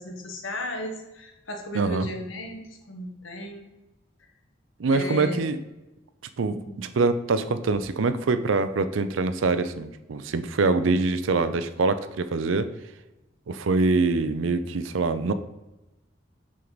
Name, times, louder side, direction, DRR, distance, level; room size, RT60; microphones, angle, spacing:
voice 1, 0.0-3.7 4.2-4.3 4.9-5.4 6.5-6.9, left 1 dB, 90° left, 3 dB, 1.2 m, -35 dB
voice 2, 1.7-2.1 4.8-5.6 6.4-12.7 13.5-15.3, right 3 dB, 85° right, 11 dB, 0.5 m, -24 dB
6.2 x 4.6 x 4.0 m, 1.0 s
head